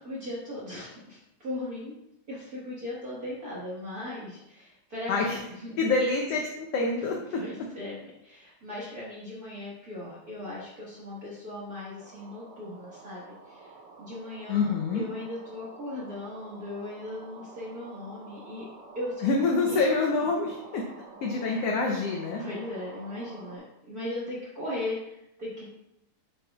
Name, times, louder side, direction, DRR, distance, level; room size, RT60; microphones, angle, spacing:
voice 1, 0.0-1.9 2.3-5.7 7.1-14.7 14.9-18.6 18.9-19.3 19.6-19.8 21.5-21.6 22.4-25.7, left 1 dB, 45° right, -7 dB, 1.3 m, -38 dB
voice 2, 5.8-7.4 14.5-15.0 19.2-20.8 21.2-22.4, left 3 dB, 80° left, 0 dB, 1.4 m, -26 dB
sound 1, 12.0-23.6, right 4 dB, 80° right, 2.7 m, -49 dB
7.7 x 6.6 x 2.3 m, 0.82 s
omnidirectional pair, 3.6 m